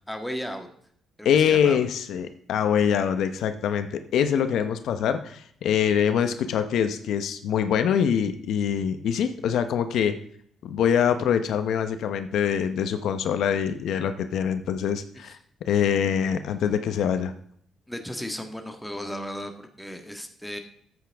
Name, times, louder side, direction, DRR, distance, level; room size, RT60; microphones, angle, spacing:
voice 1, 0.1-0.7 1.2-1.8 17.9-20.6, equal, 5° left, 4 dB, 1.5 m, -35 dB
voice 2, 1.2-10.1 10.6-15.4 15.7-17.3, left 8 dB, 75° left, 9 dB, 0.8 m, -24 dB
13.5 x 8.1 x 3.5 m, 0.65 s
cardioid pair, 90°, 0 cm